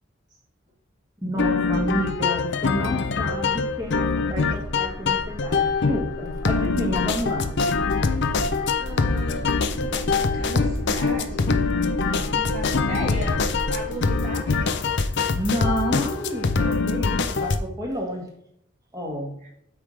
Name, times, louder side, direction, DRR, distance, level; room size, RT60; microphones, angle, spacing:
voice 1, 1.2-7.5 15.3-18.3 18.9-19.4, equal, 20° right, 0 dB, 1.7 m, -30 dB
sound 1, 1.4-17.6, left 4 dB, 60° left, 0.6 m, -24 dB
sound 2, 2.7-14.3, equal, 90° left, 1.9 m, -35 dB
voice 2, 8.8-11.6 12.3-13.4 13.7-14.5 19.4-19.5, equal, 40° right, -4 dB, 3.1 m, -35 dB
8.3 x 3.7 x 6.2 m, 0.73 s
head